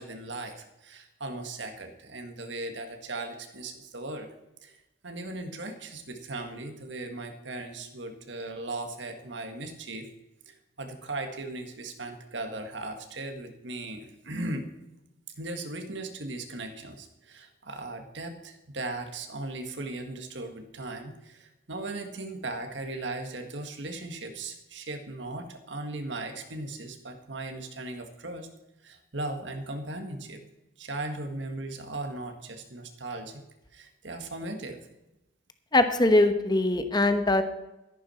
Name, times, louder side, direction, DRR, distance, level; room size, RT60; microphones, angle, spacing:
voice 1, 0.0-4.3 4.6-4.8 5.0-10.1 10.5-14.7 15.4-28.5 28.8-30.4 30.8-33.4 33.7-34.8, right 2 dB, 65° right, 6 dB, 1.7 m, -38 dB
voice 2, 35.7-37.4, left 2 dB, 20° left, 9 dB, 1.0 m, -22 dB
13.5 x 11.0 x 4.4 m, 0.96 s
head